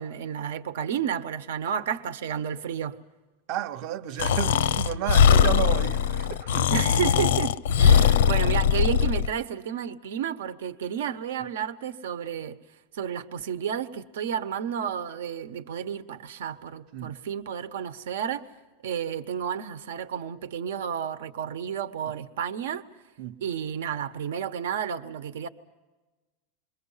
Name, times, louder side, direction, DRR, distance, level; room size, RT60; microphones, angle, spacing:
voice 1, 0.0-3.0 6.7-12.6 12.9-18.5 18.8-22.8 23.4-25.5, right 8 dB, 80° right, 1.1 m, -31 dB
voice 2, 3.5-6.8 7.9-8.1 16.9-17.2 23.2-23.4, right 12 dB, 40° right, 0.7 m, -32 dB
Breathing, 4.2-9.3, left 8 dB, 90° left, 0.6 m, -20 dB
27.5 x 23.0 x 5.7 m
supercardioid pair, 170°, 0 cm